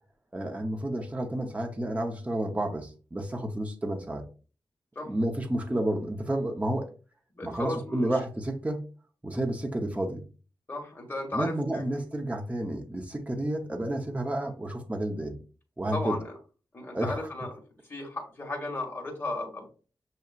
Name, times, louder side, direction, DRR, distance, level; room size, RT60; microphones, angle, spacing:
voice 1, 0.3-4.2 5.1-6.9 7.4-8.8 9.2-10.2 11.3-15.4 15.8-16.2 16.9-17.2, right 1 dB, 15° right, 0.8 m, -30 dB
voice 2, 7.3-8.1 10.7-11.8 15.9-16.3 16.7-17.5 17.9-19.7, left 2 dB, 25° left, 1.4 m, -35 dB
6.4 x 2.8 x 2.4 m
wide cardioid pair, 105°, 8 cm